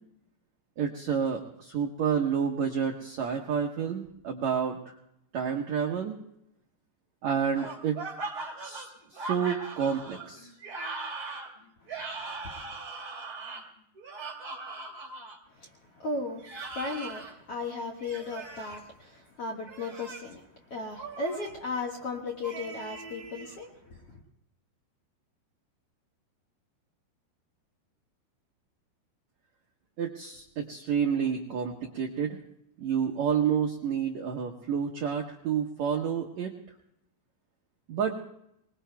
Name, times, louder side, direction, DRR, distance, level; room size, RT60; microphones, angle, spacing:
voice 1, 0.8-4.9 5.3-6.1 7.2-8.0 8.6-10.5 30.0-32.4 32.8-36.5 37.9-38.2, right 7 dB, 75° right, 2 dB, 1.6 m, -29 dB
sound 1, 7.5-15.4 16.4-17.3 18.0-18.8 19.6-20.3 21.0-21.5 22.4-23.6, right 3 dB, 25° right, 2.9 m, -40 dB
voice 2, 12.1-12.5 15.5-24.2, left 3 dB, 55° left, -1 dB, 1.7 m, -36 dB
25.5 x 21.0 x 2.3 m, 0.79 s
omnidirectional pair, 4.9 m